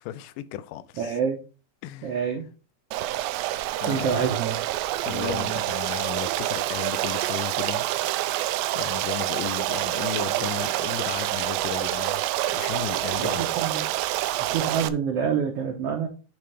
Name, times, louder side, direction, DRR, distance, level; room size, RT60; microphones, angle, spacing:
voice 1, 0.0-1.1 1.8-2.4 3.8-4.3 5.1-7.9 8.7-13.7, left 12 dB, 80° left, 2.0 m, -35 dB
voice 2, 1.0-1.4 2.0-2.4 3.9-4.6 5.1-5.6 13.2-13.8 14.5-16.1, right 7 dB, 75° right, 1.4 m, -27 dB
Stream, 2.9-14.9, right 15 dB, 90° right, 2.4 m, -27 dB
8.9 x 3.3 x 5.1 m
omnidirectional pair, 4.2 m